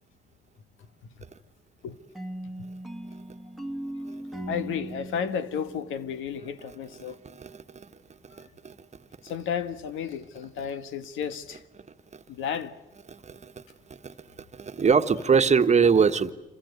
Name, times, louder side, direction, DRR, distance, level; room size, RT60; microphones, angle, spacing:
sound 1, 2.1-7.0, right 1 dB, ahead, 1.6 m, -39 dB
voice 1, 4.5-7.2 9.2-11.6 12.3-12.7, left 7 dB, 90° left, 1.4 m, -32 dB
voice 2, 7.0-7.9 8.4-8.7 13.1-13.5 14.0-14.1 14.5-16.3, right 6 dB, 35° right, 1.4 m, -23 dB
27.0 x 26.5 x 8.1 m
cardioid pair, 90°, 20 cm